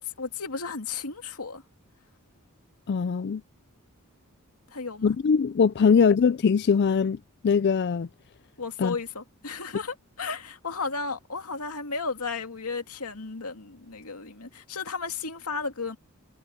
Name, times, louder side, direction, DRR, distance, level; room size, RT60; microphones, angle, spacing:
voice 1, 0.0-1.6 4.7-5.1 5.8-6.0 8.6-16.0, left 4 dB, 85° left, 2.3 m, -34 dB
voice 2, 2.9-3.4 5.0-7.2 7.4-8.1 8.8-8.9, left 6 dB, 50° left, 0.4 m, -21 dB
head